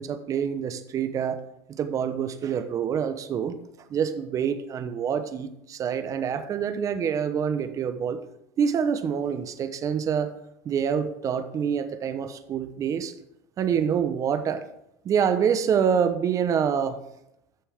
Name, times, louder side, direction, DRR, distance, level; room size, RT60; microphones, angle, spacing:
voice 1, 0.0-1.4 1.7-3.6 3.9-8.2 8.6-10.3 10.6-13.1 13.6-14.6 15.0-17.0, right 7 dB, 35° right, 9 dB, 1.0 m, -26 dB
12.5 x 7.0 x 3.6 m, 0.83 s
supercardioid pair, 115°, 9 cm